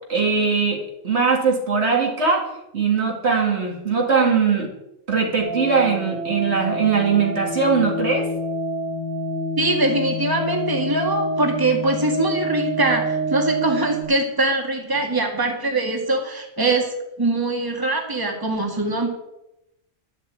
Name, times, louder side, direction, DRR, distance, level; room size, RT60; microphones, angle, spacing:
voice 1, 0.1-4.7 5.1-8.3, right 5 dB, 55° right, 1 dB, 2.3 m, -20 dB
sound 1, 5.4-14.0, right 1 dB, 20° left, 2.8 m, -27 dB
voice 2, 9.6-16.9 17.2-19.1, right 2 dB, 15° right, 2 dB, 2.0 m, -22 dB
11.5 x 7.4 x 8.4 m, 0.87 s
omnidirectional pair, 1.3 m